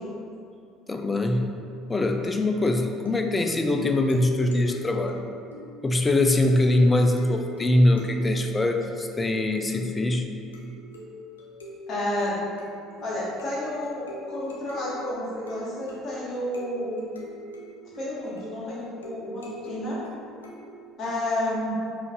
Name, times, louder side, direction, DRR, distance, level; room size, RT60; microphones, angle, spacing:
voice 1, 0.9-1.6 1.9-5.2 5.8-10.3, left 1 dB, 20° left, 5 dB, 0.4 m, -23 dB
sound 1, 1.7-20.9, left 1 dB, 80° left, 0.5 m, -42 dB
voice 2, 11.9-12.3 13.0-17.3 18.0-20.0 21.0-21.7, left 1 dB, 45° left, -6 dB, 1.2 m, -31 dB
4.4 x 2.5 x 3.6 m, 2.4 s
figure-of-eight pair, 60°, 0 cm